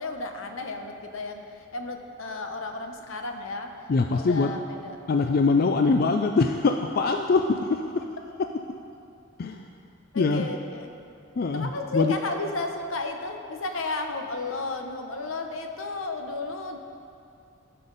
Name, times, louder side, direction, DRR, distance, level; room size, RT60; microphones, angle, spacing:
voice 1, 0.0-1.4 1.7-3.7 4.1-5.0 10.1-10.9 11.5-16.8, left 3 dB, 75° left, 5 dB, 0.9 m, -33 dB
voice 2, 3.9-4.5 5.1-8.0 9.4-9.7 10.2-10.5 11.4-12.1, left 4 dB, 45° left, 4 dB, 0.3 m, -23 dB
17.0 x 5.7 x 4.0 m, 2.5 s
head